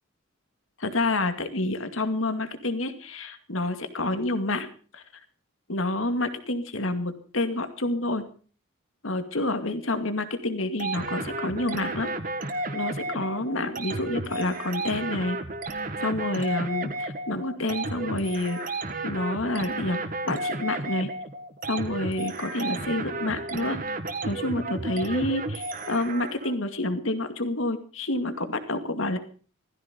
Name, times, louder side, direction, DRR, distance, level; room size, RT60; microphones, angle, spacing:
voice 1, 0.8-4.7 4.9-5.0 5.7-8.2 9.0-12.1 12.7-15.4 16.0-18.6 19.0-20.0 20.2-21.1 21.7-23.8 24.2-29.2, left 2 dB, 75° left, 8 dB, 2.3 m, -28 dB
sound 1, 10.8-26.5, right 2 dB, 40° right, 1.9 m, -33 dB
17.0 x 14.5 x 5.2 m, 0.40 s
head